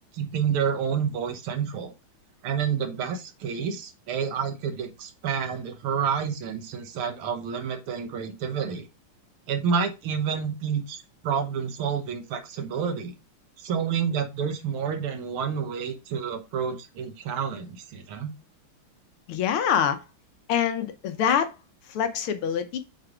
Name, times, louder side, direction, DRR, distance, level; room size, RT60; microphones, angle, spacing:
voice 1, 0.1-1.9 2.4-8.9 9.5-13.1 13.6-18.3, right 7 dB, 85° right, 1.9 m, -29 dB
voice 2, 19.3-20.0 20.5-21.5 21.9-22.8, left 8 dB, 90° left, 1.8 m, -25 dB
6.4 x 3.4 x 4.7 m
omnidirectional pair, 2.3 m